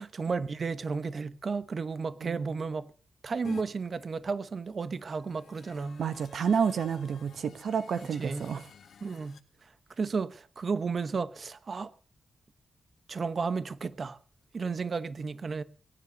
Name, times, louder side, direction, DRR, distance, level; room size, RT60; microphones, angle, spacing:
voice 1, 0.0-2.9 3.2-6.0 8.2-8.5 9.0-9.7 10.0-11.9 13.1-14.2 14.5-15.6, right 4 dB, 55° right, 1.1 m, -33 dB
sound 1, 3.4-3.6 5.0-9.4, left 7 dB, 80° left, 1.7 m, -51 dB
voice 2, 6.0-8.7, right 7 dB, 80° right, 1.0 m, -30 dB
19.0 x 9.9 x 6.7 m
cardioid pair, 70°, 0 cm